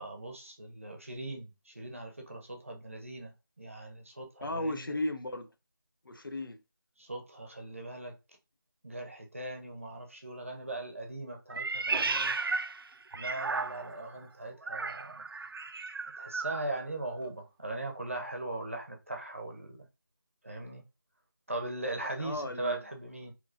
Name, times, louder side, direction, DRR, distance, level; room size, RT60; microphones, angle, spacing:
voice 1, 0.0-5.0 7.0-8.1 8.8-12.5 13.1-15.3 16.2-19.9 20.4-20.8 21.5-23.3, right 2 dB, 35° right, 0.8 m, -40 dB
voice 2, 4.4-5.5 6.0-6.6 17.2-17.3 22.0-22.8, left 1 dB, 70° left, 0.8 m, -35 dB
Meow, 11.5-14.1 14.6-16.7, right 4 dB, 90° right, 0.4 m, -34 dB
3.9 x 3.0 x 2.4 m
figure-of-eight pair, 180°, 12 cm